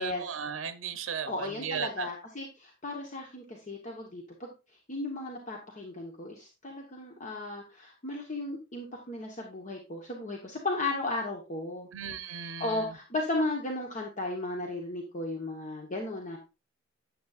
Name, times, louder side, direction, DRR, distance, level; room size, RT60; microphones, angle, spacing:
voice 1, 0.0-2.1 11.9-12.9, right 7 dB, 80° right, 0.6 m, -36 dB
voice 2, 1.3-4.5 4.9-11.9 12.3-16.4, left 2 dB, 40° left, 1.2 m, -35 dB
9.3 x 7.8 x 2.4 m
head